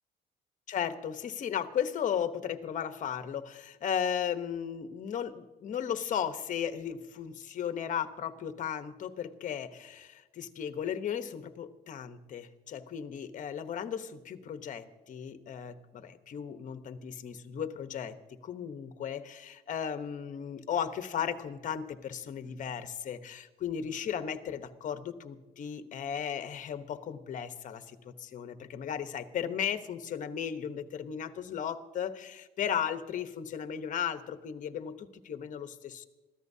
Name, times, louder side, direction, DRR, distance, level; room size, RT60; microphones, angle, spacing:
voice 1, 0.7-36.1, left 8 dB, 50° left, 10 dB, 1.0 m, -35 dB
26.0 x 14.5 x 2.8 m, 1.2 s
cardioid pair, 110°, 17 cm